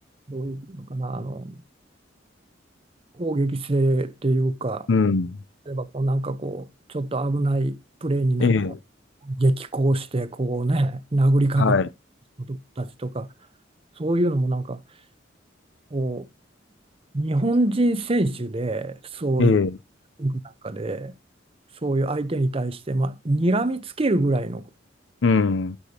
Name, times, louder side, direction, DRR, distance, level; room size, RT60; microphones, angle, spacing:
voice 1, 0.3-1.6 3.2-4.9 5.7-8.5 9.2-11.7 12.4-13.3 14.0-14.8 15.9-16.3 17.1-19.6 20.2-21.2 21.8-24.6, right 2 dB, 30° right, 0.7 m, -24 dB
voice 2, 4.9-5.4 8.4-8.8 11.6-11.9 19.4-19.8 25.2-25.8, left 4 dB, 80° left, 0.6 m, -20 dB
9.8 x 6.9 x 2.8 m
head